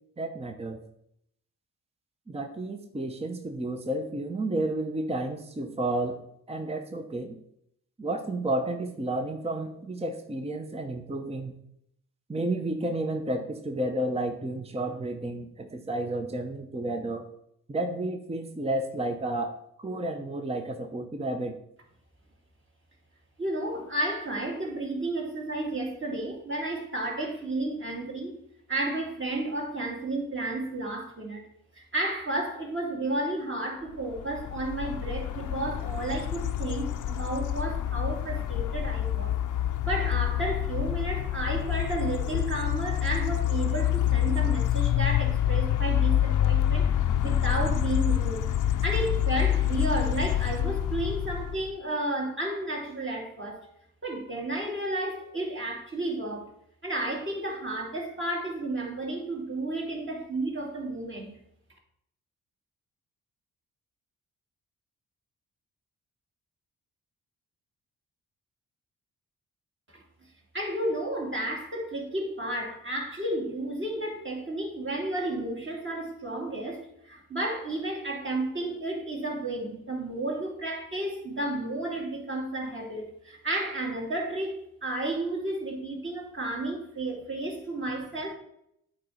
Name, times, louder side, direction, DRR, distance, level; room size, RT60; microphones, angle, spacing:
voice 1, 0.2-0.8 2.3-6.2 6.5-7.4 8.0-11.5 12.3-17.3 17.7-21.5, right 1 dB, 15° right, 0.8 m, -31 dB
voice 2, 23.4-28.4 28.7-31.5 31.7-39.4 39.8-46.9 47.2-48.5 48.8-53.7 54.0-56.4 56.8-61.4 69.9-70.0 70.5-88.3, right 2 dB, 30° right, 2.3 m, -32 dB
sound 1, 34.1-51.7, left 11 dB, 55° left, 0.6 m, -27 dB
8.5 x 3.0 x 5.0 m
supercardioid pair, 45°, 37 cm